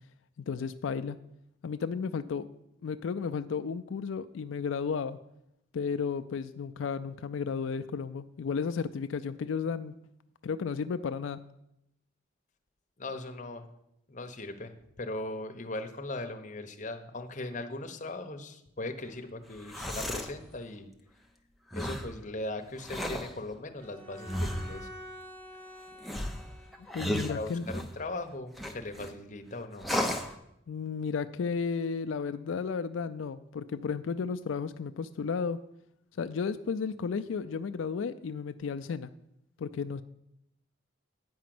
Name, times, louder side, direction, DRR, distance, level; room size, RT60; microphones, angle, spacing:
voice 1, 0.4-1.2 1.6-2.5 2.8-5.2 5.7-9.9 10.4-11.4 26.9-27.7 30.7-35.6 36.2-39.1 39.6-40.0, left 5 dB, 85° left, 11 dB, 0.4 m, -33 dB
voice 2, 13.0-13.7 14.1-20.9 21.7-24.9 27.3-30.2, left 2 dB, 40° left, 5 dB, 0.9 m, -39 dB
sound 1, 19.5-20.4 21.7-22.1 22.8-23.3 24.3-24.8 26.0-28.0 28.6-29.1 29.8-30.3, equal, ahead, 0.6 m, -34 dB
Bowed string instrument, 23.8-27.3, equal, 55° right, 2.8 m, -48 dB
9.4 x 5.1 x 7.7 m, 0.81 s
head